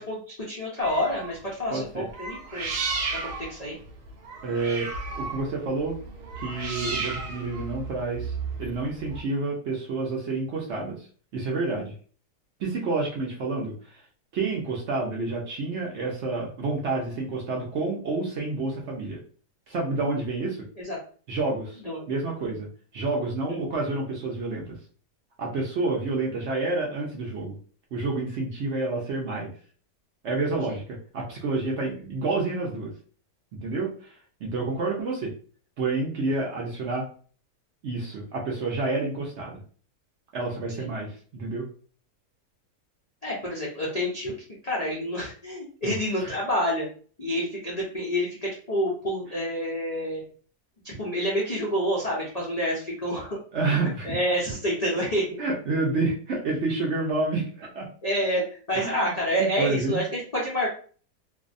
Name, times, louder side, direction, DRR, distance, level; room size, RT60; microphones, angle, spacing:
voice 1, 0.1-2.7 3.1-3.8 20.8-21.0 21.8-22.1 23.5-23.6 30.7-30.8 40.8-40.9 43.2-44.3 44.6-46.9 47.2-50.2 50.8-53.4 53.8-55.4 58.0-60.7, equal, 75° left, -4 dB, 0.3 m, -28 dB
sound 1, 0.8-1.4 2.1-9.2, right 4 dB, 90° right, 1.2 m, -33 dB
voice 2, 1.7-2.1 4.4-6.0 6.4-11.1 11.3-11.9 12.6-13.9 14.3-19.2 19.7-20.7 21.3-21.8 22.1-24.8 25.4-27.6 27.9-29.5 30.2-32.9 33.6-33.9 34.4-35.3 35.8-37.1 37.8-39.6 40.3-41.7 45.8-45.9 53.5-54.2 55.4-57.9 58.8-59.1 59.4-60.0, right 3 dB, 65° right, -1 dB, 0.7 m, -29 dB
2.6 x 2.1 x 2.5 m, 0.42 s
omnidirectional pair, 1.7 m